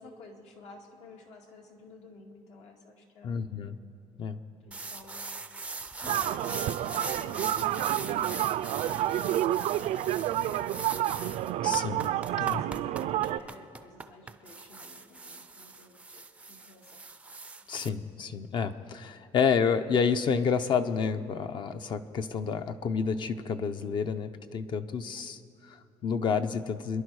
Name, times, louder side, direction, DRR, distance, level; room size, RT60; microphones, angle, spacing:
voice 1, 0.0-3.4 4.6-5.3 6.2-8.6 8.9-10.6 12.3-17.0, left 3 dB, 75° left, 2 dB, 2.1 m, -52 dB
voice 2, 3.2-3.7 4.2-4.4 11.6-12.0 12.4-12.6 17.7-27.0, left 6 dB, 45° left, 10 dB, 0.6 m, -29 dB
sound 1, 4.7-17.9, right 3 dB, 10° right, 0.4 m, -41 dB
sound 2, 6.0-13.4, right 13 dB, 80° right, 0.4 m, -29 dB
28.0 x 11.0 x 4.8 m, 2.8 s
cardioid pair, 170°, 12 cm